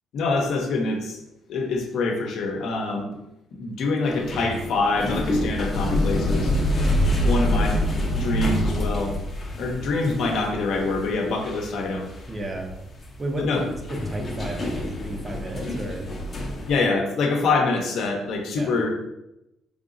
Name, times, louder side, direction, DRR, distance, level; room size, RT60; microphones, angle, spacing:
voice 1, 0.1-1.2 1.5-3.1 3.5-6.5 7.2-7.8 8.1-9.1 9.6-12.1 13.4-13.6 16.7-18.9, left 3 dB, 65° left, 2 dB, 0.7 m, -25 dB
sound 1, 4.0-16.8, left 1 dB, 30° left, 0.7 m, -26 dB
voice 2, 12.3-12.7 13.2-13.5 13.9-16.1 18.6-18.8, right 1 dB, 25° right, 2 dB, 0.6 m, -33 dB
3.8 x 3.5 x 2.6 m, 0.89 s
cardioid pair, 130°, 0 cm